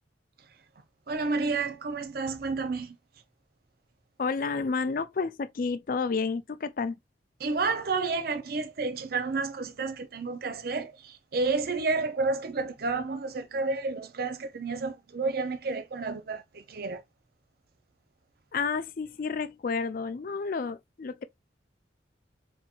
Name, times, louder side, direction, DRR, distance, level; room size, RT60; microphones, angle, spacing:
voice 1, 1.1-3.0 7.4-17.0, right 3 dB, 55° right, 0.5 m, -30 dB
voice 2, 4.2-7.0 18.5-21.2, left 4 dB, 50° left, 0.4 m, -30 dB
4.3 x 2.8 x 2.4 m
head